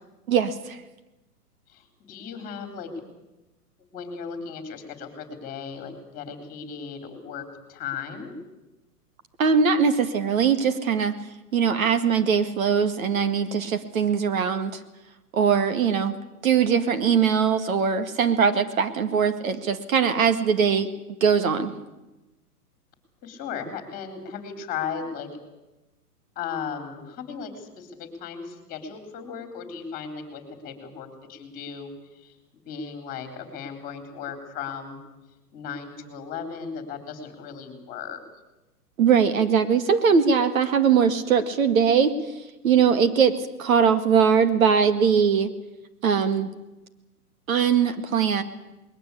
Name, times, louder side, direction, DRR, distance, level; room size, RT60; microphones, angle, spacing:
voice 1, 0.3-0.8 9.4-11.1 11.5-14.8 15.3-16.1 16.4-20.9 21.2-21.7 39.0-42.1 42.6-45.5 46.0-46.5 47.5-48.4, right 6 dB, 60° right, 10 dB, 2.1 m, -21 dB
voice 2, 1.7-2.9 3.9-8.4 23.2-25.3 26.4-32.4 32.7-35.0 35.5-38.2, left 6 dB, 20° left, 6 dB, 4.0 m, -36 dB
20.5 x 18.5 x 8.5 m, 1.0 s
hypercardioid pair, 150°, 46 cm